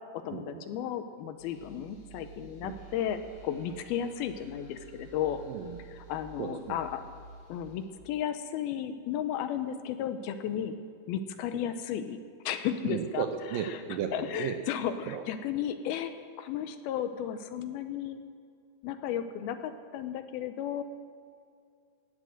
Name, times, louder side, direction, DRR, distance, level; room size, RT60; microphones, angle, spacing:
voice 1, 0.1-5.4 5.9-7.0 7.5-10.8 11.1-13.3 13.5-13.8 14.1-18.2 18.8-20.8, left 9 dB, 80° left, 9 dB, 2.5 m, -34 dB
sound 1, 1.4-7.9, right 4 dB, 35° left, 2.3 m, -51 dB
voice 2, 5.5-5.8 6.4-6.8 12.8-14.6 15.1-15.2, right 8 dB, 80° right, 6 dB, 2.0 m, -34 dB
18.5 x 7.9 x 7.7 m, 2.3 s
omnidirectional pair, 4.7 m